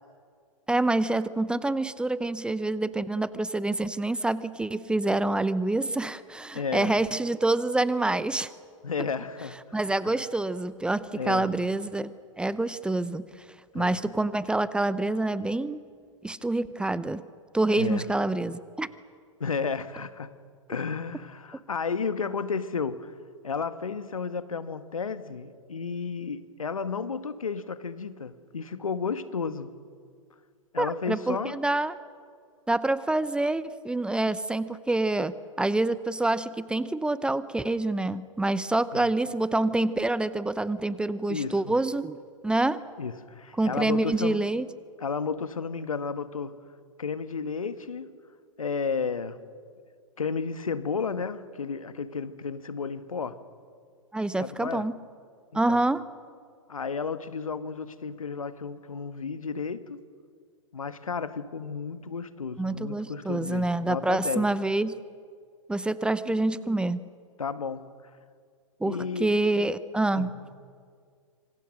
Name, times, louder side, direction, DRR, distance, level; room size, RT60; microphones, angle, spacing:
voice 1, 0.7-8.5 9.7-13.3 13.7-15.8 16.2-17.2 17.5-18.9 30.8-31.9 32.7-42.2 42.4-42.8 43.6-44.7 54.1-54.9 55.5-56.0 62.6-65.0 65.7-67.0 68.8-70.4, right 2 dB, 5° right, 16 dB, 0.7 m, -27 dB
voice 2, 6.5-6.9 8.8-9.6 10.0-10.2 11.1-11.5 13.7-14.0 17.8-18.1 19.4-20.3 20.7-23.1 23.4-29.7 30.7-31.6 38.9-39.1 41.3-41.7 43.0-44.4 45.0-46.6 47.0-48.1 48.6-49.4 50.2-53.4 54.4-54.8 55.5-55.8 56.7-60.0 60.7-64.5 67.4-67.8 68.8-69.3 70.2-70.3, left 5 dB, 80° left, 12 dB, 1.4 m, -32 dB
26.5 x 26.0 x 6.5 m, 2.1 s
figure-of-eight pair, 110°, 17 cm